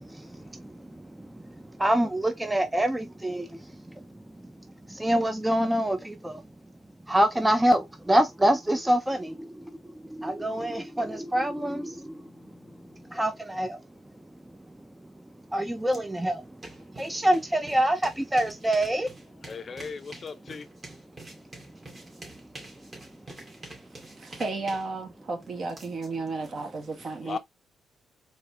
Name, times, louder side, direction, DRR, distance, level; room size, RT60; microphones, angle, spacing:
voice 1, 0.0-4.1 4.4-4.5 4.9-6.4 7.1-12.3 13.1-13.8 15.5-16.6 16.9-19.1, right 1 dB, 10° right, 0.5 m, -26 dB
sound 1, 15.9-16.0 16.3-26.5, right 2 dB, 30° right, 2.2 m, -47 dB
voice 2, 19.5-20.7 27.3-27.4, left 5 dB, 45° left, 0.5 m, -36 dB
voice 3, 24.2-27.4, right 3 dB, 50° right, 1.5 m, -33 dB
4.2 x 3.0 x 3.2 m
cardioid pair, 90°, 0 cm